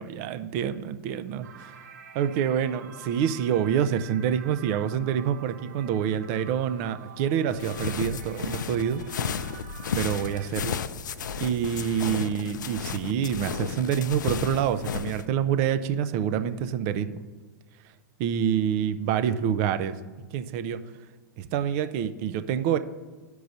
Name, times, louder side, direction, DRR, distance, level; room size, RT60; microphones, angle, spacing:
voice 1, 0.0-1.8 2.1-9.0 9.3-9.4 10.0-10.8 11.4-17.2 18.2-20.0 20.3-20.8 21.4-22.8, right 9 dB, 50° right, 11 dB, 0.5 m, -27 dB
sound 1, 1.4-10.5, right 8 dB, 65° right, 1.0 m, -48 dB
sound 2, 7.5-15.2, left 6 dB, 75° left, 0.4 m, -33 dB
13.5 x 4.7 x 2.6 m, 1.4 s
hypercardioid pair, 100°, 10 cm